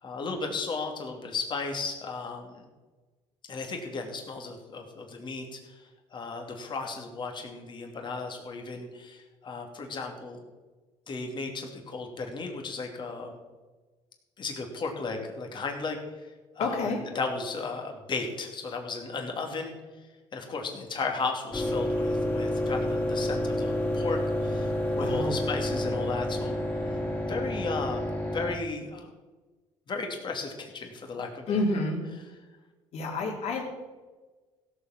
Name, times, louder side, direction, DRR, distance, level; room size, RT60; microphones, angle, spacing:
voice 1, 0.0-2.7 3.5-10.4 11.1-13.4 14.4-16.3 16.5-19.7 20.3-26.6 27.2-29.1 29.9-31.8, left 4 dB, 40° left, 3 dB, 2.7 m, -35 dB
voice 2, 16.6-17.0 24.9-25.4 31.5-32.0 32.9-33.6, left 2 dB, 65° left, 0 dB, 3.5 m, -29 dB
sound 1, 21.5-28.5, left 1 dB, 15° left, 3.0 m, -29 dB
16.0 x 7.1 x 6.0 m, 1.3 s
cardioid pair, 105°, 12 cm